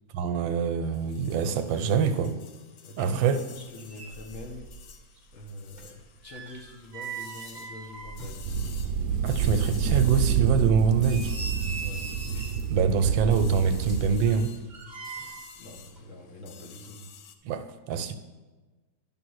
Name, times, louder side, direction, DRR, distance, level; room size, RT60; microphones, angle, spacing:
voice 1, 0.1-2.4 3.0-3.4 9.2-11.3 12.7-14.5 17.4-18.2, right 6 dB, 85° right, 9 dB, 1.4 m, -25 dB
sound 1, 0.8-17.4, left 8 dB, 70° left, 1.0 m, -50 dB
voice 2, 2.8-4.7 5.3-8.5 11.8-12.1 15.5-17.0, left 2 dB, 50° left, 0 dB, 1.2 m, -45 dB
sound 2, 3.6-3.7 3.9-4.9 5.2-9.1 9.5-9.6 10.1-10.2 10.8-12.7 13.6-15.6 15.9-16.0, right 4 dB, 35° right, 0.8 m, -41 dB
sound 3, 8.5-14.3, right 7 dB, 70° right, 1.0 m, -28 dB
11.0 x 3.7 x 6.2 m, 1.3 s
omnidirectional pair, 2.1 m